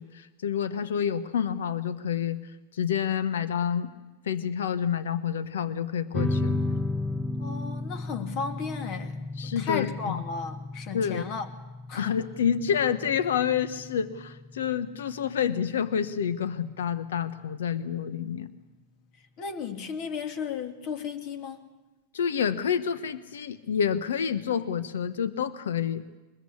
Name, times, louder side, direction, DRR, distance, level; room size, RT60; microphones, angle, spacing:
voice 1, 0.0-2.4 2.7-3.9 4.2-6.6 9.4-10.2 10.9-11.3 11.9-18.5 22.1-26.0, left 8 dB, 75° left, 13 dB, 1.2 m, -28 dB
sound 1, 6.1-17.1, left 2 dB, ahead, 1.3 m, -34 dB
voice 2, 7.4-11.5 11.9-12.2 19.4-21.6, left 6 dB, 50° left, 7 dB, 2.7 m, -34 dB
23.0 x 21.0 x 8.5 m, 1.1 s
hypercardioid pair, 100°, 0 cm